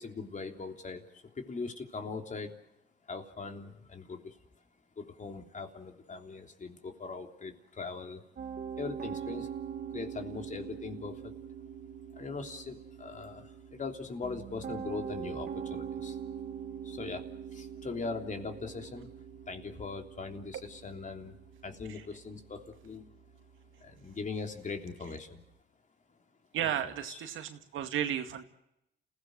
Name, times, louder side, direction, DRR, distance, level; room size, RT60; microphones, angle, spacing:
voice 1, 0.0-2.5 3.1-4.3 5.0-8.2 8.8-9.5 9.9-11.3 12.1-16.2 16.8-19.1 19.5-21.4 21.6-23.1 23.8-25.4 27.1-27.2, left 4 dB, 40° left, 4 dB, 3.4 m, -40 dB
Piano, 8.4-25.5, right 8 dB, 50° right, 2.0 m, -43 dB
voice 2, 26.5-28.4, right 10 dB, 80° right, 7 dB, 2.2 m, -34 dB
29.5 x 16.5 x 7.9 m, 0.85 s
cardioid pair, 90°, 20 cm